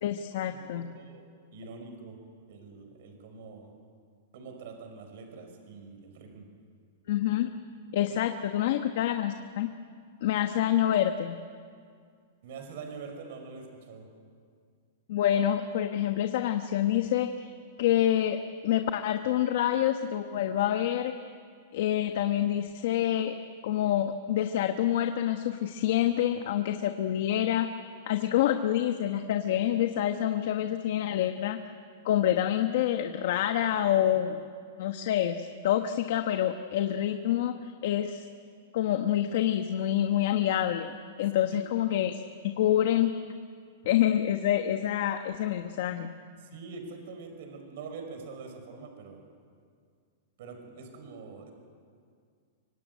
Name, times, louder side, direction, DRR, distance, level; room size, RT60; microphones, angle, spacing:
voice 1, 0.0-0.9 7.1-7.5 7.9-9.7 10.2-11.4 15.1-17.5 17.8-18.4 18.6-21.1 21.7-23.3 23.6-27.7 28.1-31.6 32.0-34.4 34.8-37.5 37.8-38.3 38.7-40.9 41.2-42.2 42.6-43.1 43.8-46.1, left 11 dB, 45° left, 7 dB, 1.2 m, -27 dB
voice 2, 0.7-1.2 1.5-2.2 2.5-3.8 4.3-6.5 12.4-14.1 46.4-49.2 50.4-51.5, right 4 dB, 45° right, 5 dB, 5.2 m, -44 dB
25.0 x 24.5 x 9.3 m, 2.1 s
supercardioid pair, 180°, 0 cm